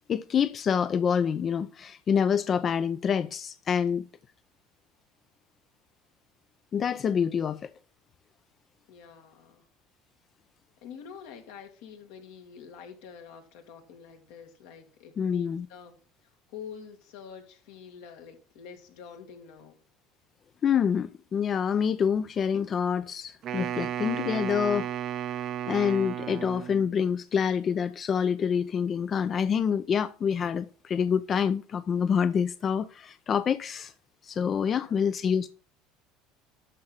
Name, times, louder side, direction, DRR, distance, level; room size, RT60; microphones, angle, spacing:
voice 1, 0.1-4.1 6.7-7.7 15.2-15.6 20.6-24.9 25.3-25.4 25.7-33.9 34.2-35.5, left 7 dB, 40° left, 0.5 m, -27 dB
voice 2, 8.9-9.6 10.8-16.0 16.5-19.8 34.6-35.0, left 7 dB, 75° left, 2.1 m, -46 dB
Wind instrument woodwind instrument, 23.4-26.9, right 10 dB, 50° right, 0.5 m, -33 dB
12.5 x 4.8 x 5.6 m
supercardioid pair, 85°, 0 cm